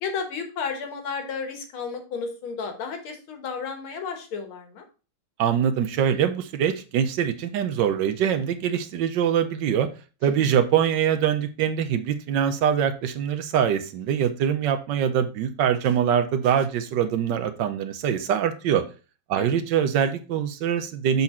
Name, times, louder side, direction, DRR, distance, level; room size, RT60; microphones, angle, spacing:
voice 1, 0.0-4.8 10.2-10.5 19.4-19.6, left 5 dB, 75° left, 5 dB, 2.1 m, -33 dB
voice 2, 5.4-9.9 10.2-18.8 19.3-21.2, right 8 dB, 70° right, 10 dB, 1.2 m, -23 dB
7.3 x 4.0 x 4.2 m, 0.34 s
omnidirectional pair, 2.3 m